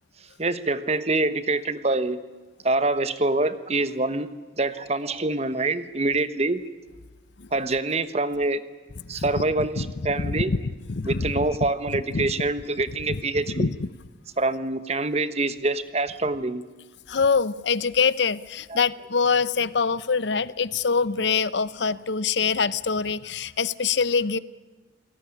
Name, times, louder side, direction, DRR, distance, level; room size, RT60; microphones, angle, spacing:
voice 1, 0.4-2.2 2.6-4.3 4.6-6.6 7.5-8.6 9.1-10.5 11.0-13.7 14.4-16.6 18.7-18.8, right 2 dB, 35° right, 13 dB, 1.2 m, -25 dB
voice 2, 9.0-12.3 13.1-13.9 17.1-24.4, left 5 dB, 75° left, 18 dB, 0.8 m, -25 dB
28.5 x 17.5 x 9.8 m, 1.3 s
head